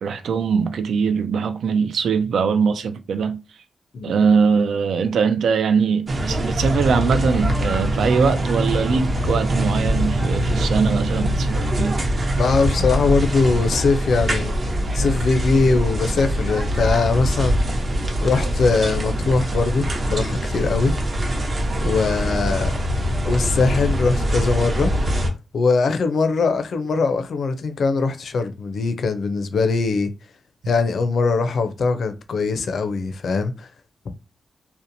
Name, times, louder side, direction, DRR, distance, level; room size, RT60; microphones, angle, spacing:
voice 1, 0.0-3.4 4.0-12.0, right 5 dB, 85° right, 0.3 m, -21 dB
sound 1, 6.1-25.3, equal, 45° right, 0.6 m, -23 dB
voice 2, 12.4-17.9 18.2-20.9 21.8-22.7 23.3-24.9 25.5-30.1 30.7-33.7, left 4 dB, 70° left, 0.4 m, -21 dB
2.8 x 2.1 x 2.6 m
cardioid pair, 90°, 0 cm